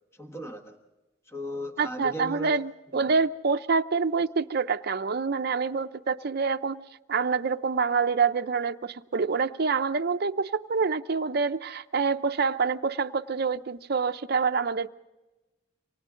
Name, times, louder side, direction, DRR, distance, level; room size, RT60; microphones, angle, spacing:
voice 1, 0.1-0.8 1.3-2.6 2.9-3.1, equal, 15° left, 5 dB, 1.3 m, -37 dB
voice 2, 1.8-14.9, right 5 dB, 50° right, 9 dB, 0.6 m, -26 dB
28.0 x 25.0 x 3.8 m, 1.1 s
head